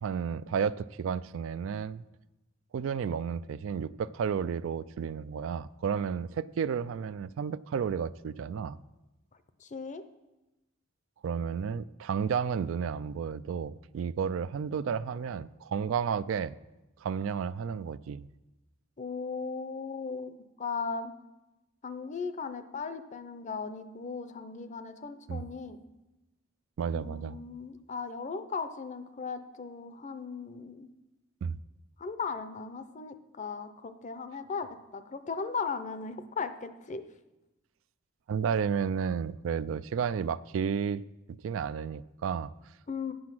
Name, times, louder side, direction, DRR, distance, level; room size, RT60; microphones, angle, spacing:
voice 1, 0.0-2.0 2.7-8.8 11.2-16.6 17.0-18.2 25.3-25.5 26.8-27.4 31.4-31.6 38.3-41.0 41.3-42.5, right 7 dB, 70° right, 17 dB, 0.3 m, -32 dB
voice 2, 9.6-10.0 19.0-21.1 21.8-25.8 26.9-30.9 32.0-37.1 42.9-43.1, left 5 dB, 35° left, 11 dB, 0.6 m, -37 dB
9.3 x 7.9 x 6.0 m, 1.0 s
head